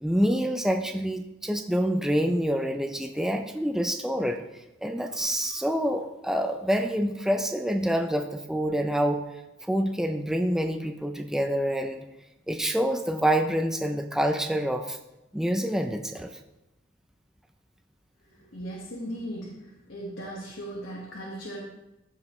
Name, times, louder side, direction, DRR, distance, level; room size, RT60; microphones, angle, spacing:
voice 1, 0.0-4.4 4.8-9.2 9.6-12.0 12.5-15.0 15.3-16.3, equal, 5° right, 5 dB, 0.4 m, -27 dB
voice 2, 18.5-19.6 19.9-21.6, right 1 dB, 90° left, -4 dB, 1.5 m, -37 dB
14.5 x 5.0 x 3.1 m, 0.95 s
head